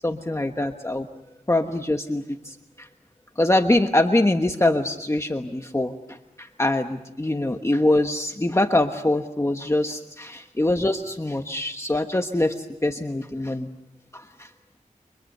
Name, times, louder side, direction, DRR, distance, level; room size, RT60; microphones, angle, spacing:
voice 1, 0.0-1.1 1.5-2.9 3.4-13.7 14.1-14.5, left 1 dB, 20° left, 5 dB, 1.2 m, -24 dB
29.5 x 26.0 x 6.7 m, 0.85 s
wide cardioid pair, 85°, 14 cm